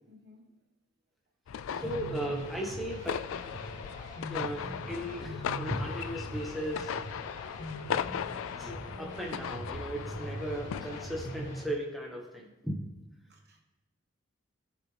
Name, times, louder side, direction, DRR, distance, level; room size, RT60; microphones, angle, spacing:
voice 1, 0.1-0.5 1.8-2.0 8.0-8.2 13.3-13.6, left 1 dB, 50° right, 2 dB, 1.4 m, -53 dB
sound 1, 1.5-11.5, left 8 dB, 80° left, 0.3 m, -38 dB
sound 2, 1.7-11.6, equal, 40° left, 2.3 m, -42 dB
voice 2, 1.8-3.2 4.3-6.9 8.6-13.0, right 1 dB, ahead, -2 dB, 1.4 m, -37 dB
18.5 x 6.8 x 3.4 m, 0.99 s
head